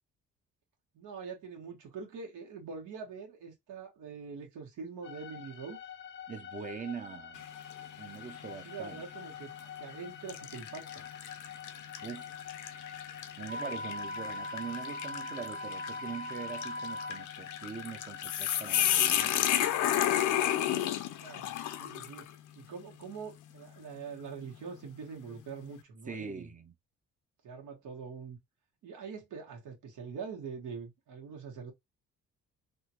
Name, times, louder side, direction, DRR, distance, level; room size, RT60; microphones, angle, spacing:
voice 1, 0.9-5.8 8.6-9.5 9.8-11.0 21.2-21.5 21.8-22.3 22.5-26.5 27.4-28.4 28.8-31.7, right 5 dB, 80° right, 1.4 m, -44 dB
sound 1, 5.0-20.0, left 8 dB, 40° left, 0.5 m, -47 dB
voice 2, 6.3-7.5 8.0-9.0 12.0-12.3 13.4-19.5 26.1-26.7, right 6 dB, 25° right, 0.6 m, -43 dB
sound 2, 7.4-7.8 8.3-8.5 9.4-9.7 10.3-22.3, left 11 dB, 80° left, 0.6 m, -32 dB
Wind instrument woodwind instrument, 13.5-17.2, left 1 dB, 60° right, 1.4 m, -40 dB
3.6 x 2.4 x 2.8 m
cardioid pair, 90°, 30 cm